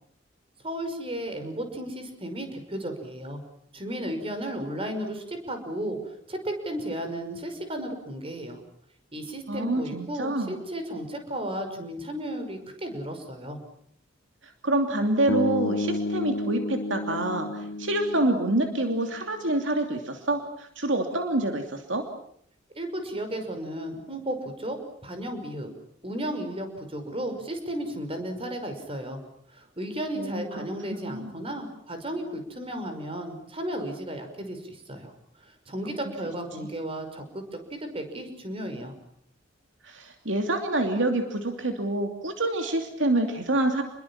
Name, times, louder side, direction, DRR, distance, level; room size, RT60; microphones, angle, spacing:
voice 1, 0.6-3.4 3.7-6.0 6.3-8.6 9.1-13.6 22.7-24.8 25.0-25.7 26.0-29.2 29.5-35.1 35.4-37.4 37.7-38.9, right 1 dB, 30° right, 6 dB, 5.8 m, -34 dB
voice 2, 9.5-10.6 14.6-22.1 30.1-31.3 35.8-35.9 36.6-36.7 39.8-43.8, right 2 dB, 70° right, 5 dB, 2.9 m, -27 dB
sound 1, 15.3-19.4, left 2 dB, 75° left, 1.1 m, -31 dB
29.5 x 22.0 x 7.4 m, 0.67 s
head